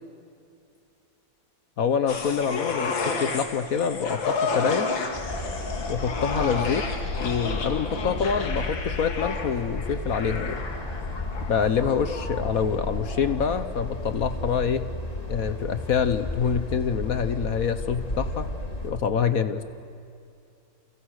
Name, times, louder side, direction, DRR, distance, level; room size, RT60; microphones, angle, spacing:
voice 1, 1.8-4.9 5.9-6.9 7.2-10.6 11.5-14.9 15.3-18.5 18.8-19.6, left 7 dB, 55° left, 11 dB, 1.2 m, -26 dB
sound 1, 2.1-13.6 13.9-14.0, left 4 dB, 75° left, 2.7 m, -32 dB
sound 2, 5.1-18.9, left 1 dB, 20° left, 2.3 m, -33 dB
29.5 x 29.5 x 6.5 m, 2.5 s
omnidirectional pair, 2.1 m